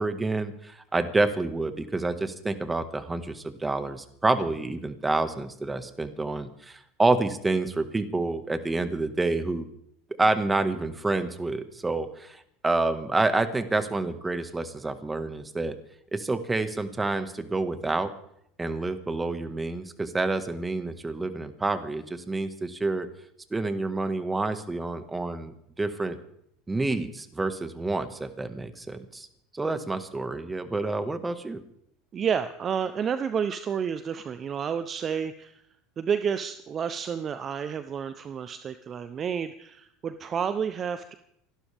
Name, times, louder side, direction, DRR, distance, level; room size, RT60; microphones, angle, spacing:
voice 1, 0.0-9.7 10.2-15.7 16.1-18.1 18.6-23.1 23.5-25.5 25.8-26.2 26.7-29.3 29.5-31.6, right 2 dB, 15° right, 10 dB, 1.7 m, -28 dB
voice 2, 32.1-35.6 36.0-41.1, right 7 dB, 35° right, 11 dB, 0.8 m, -30 dB
28.5 x 12.0 x 3.6 m, 0.72 s
hypercardioid pair, 90°, 0 cm